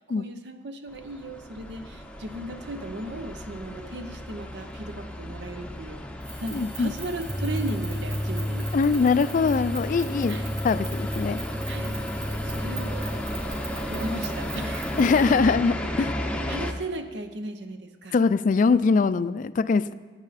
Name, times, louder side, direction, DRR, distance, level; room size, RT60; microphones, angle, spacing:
voice 1, 0.0-6.0 6.4-8.7 10.3-10.6 11.7-12.0 12.4-13.1 13.9-15.0 15.3-15.6 16.5-18.2, right 1 dB, 75° right, 8 dB, 0.8 m, -36 dB
sound 1, 0.9-16.7, equal, 5° left, 0.7 m, -34 dB
sound 2, 6.2-15.4, right 3 dB, 45° right, 4.1 m, -42 dB
voice 2, 6.5-6.9 8.7-10.4 10.6-11.4 15.0-16.1 18.1-19.9, left 4 dB, 45° left, 15 dB, 0.3 m, -22 dB
sound 3, 7.3-13.2, equal, 10° right, 2.3 m, -32 dB
15.5 x 8.9 x 4.1 m, 1.4 s
head